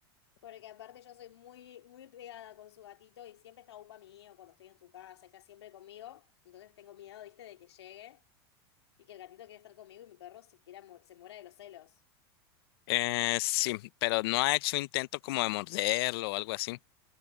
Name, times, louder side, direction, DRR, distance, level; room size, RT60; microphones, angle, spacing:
voice 1, 0.4-8.2 9.0-12.0, left 12 dB, 90° left, 2.5 m, -51 dB
voice 2, 12.9-16.8, left 21 dB, 70° left, 0.5 m, -30 dB
supercardioid pair, 115°, 13 cm